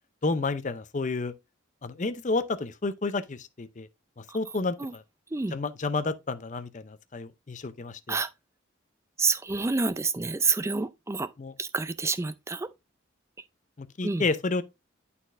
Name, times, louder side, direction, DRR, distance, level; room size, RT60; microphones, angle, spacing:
voice 1, 0.2-1.3 1.8-3.9 4.2-5.0 5.5-8.2 11.4-11.5 13.8-14.6, left 3 dB, 35° left, 0.5 m, -30 dB
voice 2, 9.2-11.3 11.6-12.7 14.0-14.3, right 4 dB, 15° right, 0.3 m, -28 dB
11.5 x 4.2 x 2.5 m
head